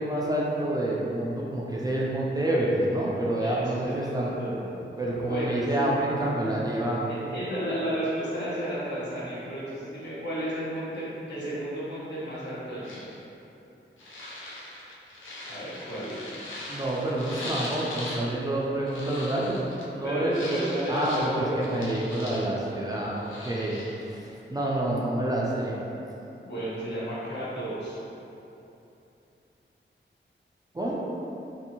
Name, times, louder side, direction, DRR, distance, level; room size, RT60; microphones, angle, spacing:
voice 1, 0.0-4.3 5.0-7.1 16.7-19.7 19.9-20.5 20.9-25.8 30.7-31.0, right 1 dB, 20° right, -5 dB, 0.3 m, -28 dB
voice 2, 3.4-4.9 5.3-5.9 7.1-13.0 15.5-16.2 20.0-21.8 26.4-28.0, right 1 dB, 60° left, -10 dB, 1.0 m, -32 dB
sound 1, 12.8-13.2 14.0-18.2 18.5-19.9 20.3-22.7 23.0-23.9, left 1 dB, 85° left, 0.5 m, -40 dB
2.6 x 2.6 x 2.8 m, 2.9 s
wide cardioid pair, 90°, 20 cm